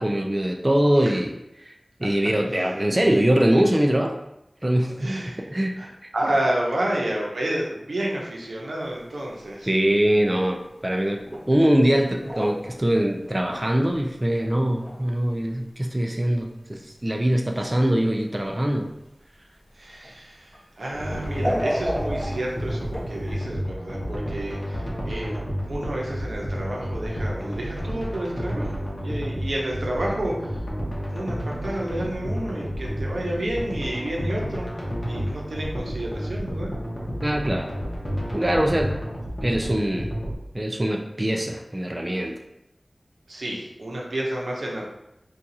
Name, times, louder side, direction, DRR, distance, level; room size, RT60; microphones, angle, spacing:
voice 1, 0.0-1.4 2.0-4.2 4.6-5.1 5.5-5.8 9.6-18.9 37.2-37.7 38.3-39.0 39.4-40.1 40.5-42.3, right 1 dB, 30° right, 2 dB, 0.3 m, -22 dB
voice 2, 5.0-5.4 5.8-9.7 19.7-25.3 25.7-30.6 31.1-34.7 35.1-36.7 43.3-44.8, right 1 dB, 90° right, -2 dB, 0.7 m, -30 dB
sound 1, 9.0-9.4 9.7-9.8 10.8-10.9 11.2-11.6 11.9-14.1 14.3-15.1 15.3-15.4 16.4-16.5 17.5-18.0 19.9-20.1 20.5-20.6 21.2-23.3, equal, ahead, 1.1 m, -32 dB
sound 2, 20.9-40.3, equal, 30° left, 0.9 m, -31 dB
2.7 x 2.3 x 3.9 m, 0.87 s
wide cardioid pair, 45°, 0 cm